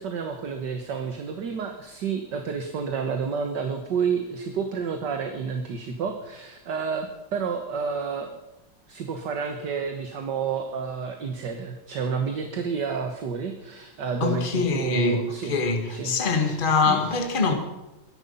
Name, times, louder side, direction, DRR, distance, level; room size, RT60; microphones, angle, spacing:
voice 1, 0.0-8.4 8.9-15.6 15.9-16.2 16.4-16.6 16.9-17.0, right 6 dB, 60° right, 1.8 m, -30 dB
voice 2, 14.2-17.5, left 4 dB, 25° left, 1.8 m, -24 dB
23.0 x 11.0 x 5.5 m
omnidirectional pair, 2.2 m